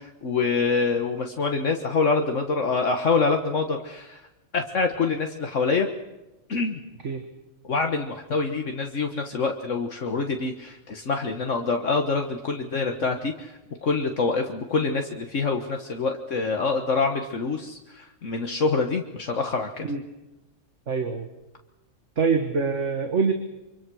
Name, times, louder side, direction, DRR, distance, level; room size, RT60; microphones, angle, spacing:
voice 1, 0.0-4.2 4.5-5.9 6.5-6.8 7.7-19.9, left 4 dB, 65° left, 4 dB, 1.7 m, -26 dB
voice 2, 20.9-21.3 22.2-23.3, right 5 dB, 60° right, 5 dB, 2.0 m, -24 dB
25.5 x 24.5 x 6.3 m, 1.0 s
omnidirectional pair, 1.4 m